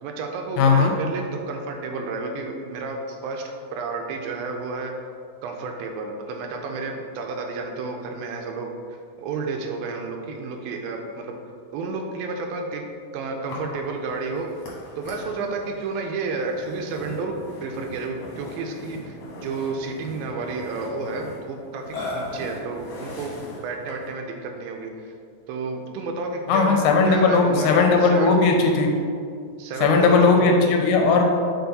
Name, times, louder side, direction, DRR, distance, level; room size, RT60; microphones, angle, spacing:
voice 1, 0.0-4.9 5.4-8.7 9.2-11.3 11.7-12.8 13.1-14.5 15.0-17.4 17.6-25.1 25.5-28.4 29.6-30.5, right 4 dB, 80° right, 3 dB, 2.3 m, -31 dB
voice 2, 0.6-0.9 26.5-28.9 29.8-31.2, left 4 dB, 85° left, 2 dB, 2.7 m, -17 dB
Burping eructation, 13.5-24.2, left 2 dB, 55° left, 2.0 m, -39 dB
6.9 x 4.2 x 4.0 m, 2.3 s
omnidirectional pair, 4.3 m